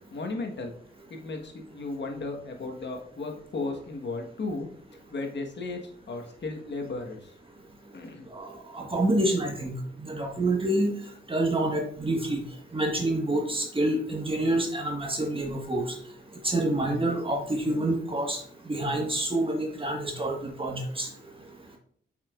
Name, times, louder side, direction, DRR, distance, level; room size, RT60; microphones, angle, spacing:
voice 1, 0.1-0.7 1.1-4.7 5.1-7.3 7.9-8.3, left 3 dB, 70° left, 3 dB, 1.5 m, -35 dB
voice 2, 8.7-9.7 10.0-10.9 11.3-12.4 12.7-15.9 16.4-18.4 18.7-21.1, right 1 dB, 30° right, 0 dB, 1.6 m, -27 dB
7.4 x 5.9 x 2.5 m, 0.64 s
cardioid pair, 75°, 19 cm